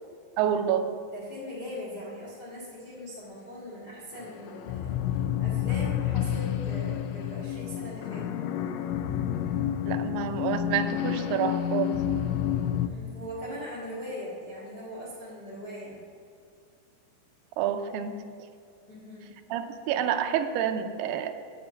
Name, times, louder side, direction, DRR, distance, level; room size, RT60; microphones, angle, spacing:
voice 1, 0.4-1.0 9.9-12.0 17.6-18.2 19.5-21.3, right 9 dB, 80° right, 7 dB, 2.5 m, -28 dB
voice 2, 1.1-8.3 12.8-16.0 18.9-19.3, left 1 dB, 60° left, -5 dB, 1.0 m, -40 dB
sound 1, 4.2-12.9, left 10 dB, 85° left, 2.3 m, -29 dB
8.9 x 7.1 x 7.9 m, 2.3 s
omnidirectional pair, 5.0 m